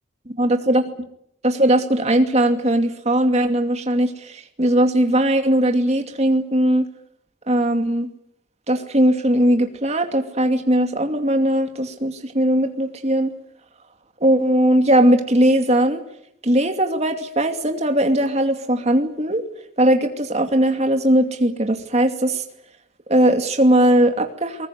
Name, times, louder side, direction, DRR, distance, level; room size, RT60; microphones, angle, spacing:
voice 1, 0.4-0.8 1.4-6.9 7.5-8.1 8.7-13.3 14.2-16.0 16.4-19.4 19.8-22.4 23.1-24.7, right 1 dB, 35° right, 5 dB, 2.5 m, -19 dB
22.5 x 20.0 x 9.6 m, 0.75 s
head